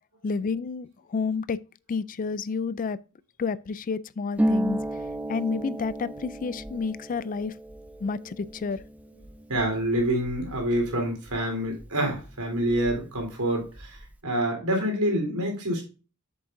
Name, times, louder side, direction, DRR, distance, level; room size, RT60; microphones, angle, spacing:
voice 1, 0.2-1.6 1.9-3.0 3.4-4.8 5.3-7.5 8.0-8.8, left 5 dB, 35° left, 0.4 m, -30 dB
Harp, 4.4-11.8 12.1-13.2 13.5-14.1, right 1 dB, 5° right, 0.6 m, -33 dB
voice 2, 9.5-15.9, right 1 dB, 90° right, 3.5 m, -27 dB
7.7 x 7.3 x 2.6 m
head